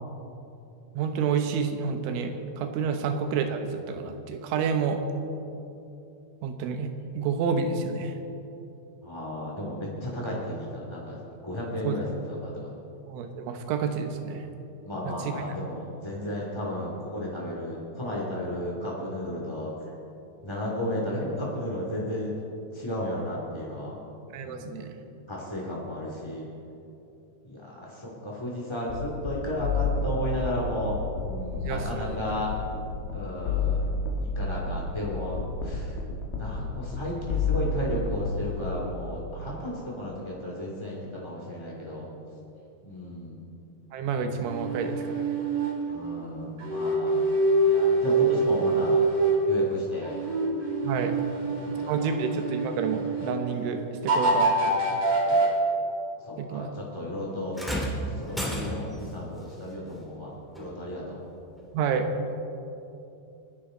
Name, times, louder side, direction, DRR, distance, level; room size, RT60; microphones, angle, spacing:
voice 1, 1.0-5.0 6.4-6.9 7.2-8.2 11.8-12.0 13.1-14.5 15.0-15.1 24.3-24.9 31.6-32.2 43.9-45.2 50.8-51.2 51.9-54.7 56.4-56.7 61.7-62.1, right 6 dB, 85° right, 6 dB, 3.6 m, -29 dB
voice 2, 9.0-12.7 14.8-19.7 20.4-22.3 22.7-23.9 24.4-24.8 25.3-26.4 27.4-32.5 33.1-33.9 34.2-36.0 36.4-42.1 42.8-43.4 45.9-47.2 47.6-49.0 49.5-50.1 51.7-52.1 55.2-55.5 56.2-57.6 58.0-61.2, left 1 dB, 30° left, -4 dB, 0.4 m, -34 dB
sound 1, 28.9-39.3, left 3 dB, 85° left, 4.2 m, -31 dB
sound 2, 44.5-45.8 46.6-49.5 50.0-53.4 54.1-55.5, right 2 dB, 40° right, 3.6 m, -25 dB
sound 3, 57.5-59.1 60.5-60.7 61.6-61.7, equal, ahead, 0.7 m, -32 dB
29.5 x 10.5 x 3.9 m, 2.8 s
omnidirectional pair, 5.4 m